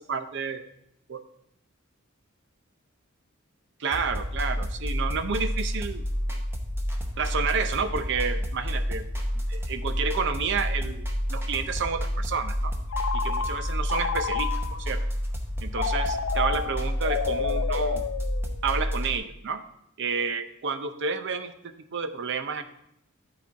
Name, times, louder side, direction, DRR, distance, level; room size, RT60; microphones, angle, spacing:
voice 1, 0.1-0.6 1.1-1.2 3.8-6.0 7.2-9.0 9.3-12.7 13.1-14.5 14.8-15.0 15.6-18.0 18.6-19.6 20.0-22.6, right 5 dB, 60° right, 9 dB, 0.6 m, -30 dB
sound 1, 3.9-19.1, equal, 10° right, 0.9 m, -30 dB
Telephone, 12.9-14.9 15.7-18.8, left 6 dB, 70° left, 0.4 m, -31 dB
11.0 x 4.3 x 4.6 m, 0.76 s
head